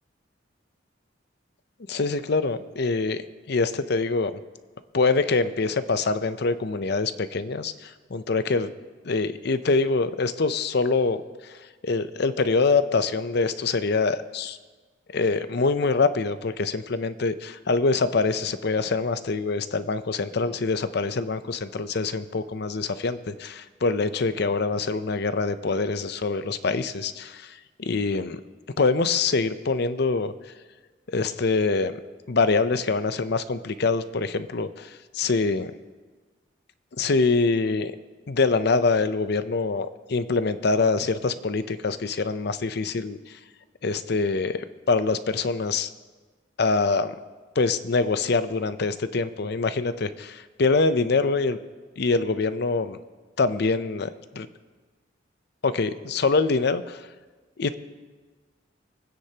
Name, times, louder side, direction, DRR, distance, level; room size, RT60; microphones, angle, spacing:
voice 1, 1.9-4.3 4.9-8.7 9.0-11.2 11.4-11.5 11.8-14.6 15.1-28.4 28.8-30.3 31.1-32.0 32.3-35.7 37.0-37.9 38.3-43.4 43.8-45.9 46.6-47.1 47.6-51.6 52.0-53.0 53.4-54.5 55.6-57.0 57.6-57.7, left 3 dB, 60° left, 12 dB, 0.6 m, -24 dB
24.5 x 9.8 x 2.9 m, 1.4 s
head